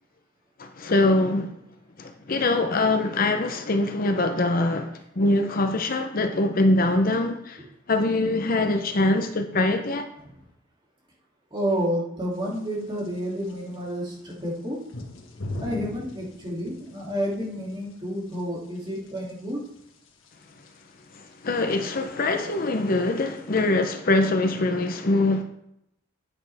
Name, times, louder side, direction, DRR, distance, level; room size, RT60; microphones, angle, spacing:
voice 1, 0.6-1.5 2.0-7.6 7.9-10.1 21.4-25.4, left 2 dB, 45° left, 0.7 m, -23 dB
voice 2, 11.5-14.8 15.6-19.6, equal, 25° right, 2.6 m, -30 dB
sound 1, 12.3-23.6, left 1 dB, 75° left, 1.4 m, -44 dB
9.5 x 9.1 x 3.4 m
head